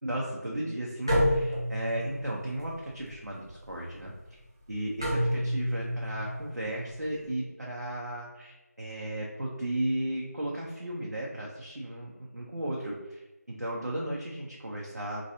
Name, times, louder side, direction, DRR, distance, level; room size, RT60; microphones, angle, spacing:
voice 1, 0.0-4.4 4.7-15.2, right 1 dB, 85° right, -4 dB, 0.7 m, -35 dB
sound 1, 1.1-7.3, equal, 15° right, 0.4 m, -31 dB
3.1 x 2.7 x 2.7 m, 1.0 s
figure-of-eight pair, 170°, 9 cm